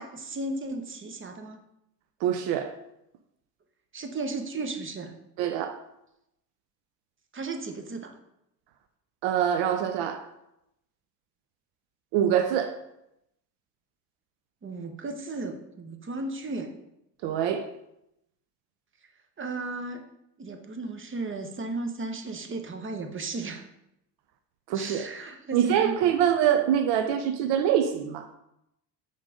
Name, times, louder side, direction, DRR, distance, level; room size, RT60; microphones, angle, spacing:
voice 1, 0.0-1.6 3.9-5.1 7.3-8.2 14.6-16.7 19.4-20.0 20.4-23.7 24.7-26.0, right 3 dB, 25° right, 5 dB, 1.0 m, -35 dB
voice 2, 2.2-2.7 5.4-5.8 9.2-10.3 12.1-12.8 17.2-17.7 24.7-25.1 25.5-28.3, right 9 dB, 65° right, 8 dB, 0.7 m, -24 dB
5.2 x 3.9 x 5.0 m, 0.84 s
hypercardioid pair, 65°, 47 cm